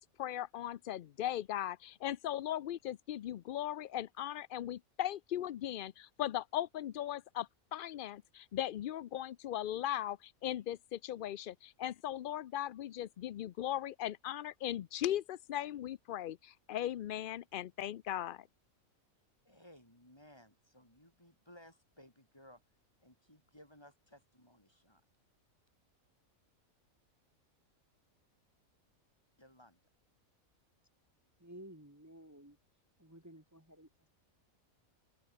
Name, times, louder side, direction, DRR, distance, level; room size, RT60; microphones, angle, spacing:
voice 1, 0.0-18.5, left 12 dB, 90° left, 0.4 m, -38 dB
voice 2, 19.4-22.6 23.0-25.0 29.4-29.8, left 1 dB, 15° left, 6.3 m, -60 dB
voice 3, 31.4-32.6 33.0-34.1, right 1 dB, 10° right, 2.6 m, -54 dB
open air
omnidirectional pair, 1.5 m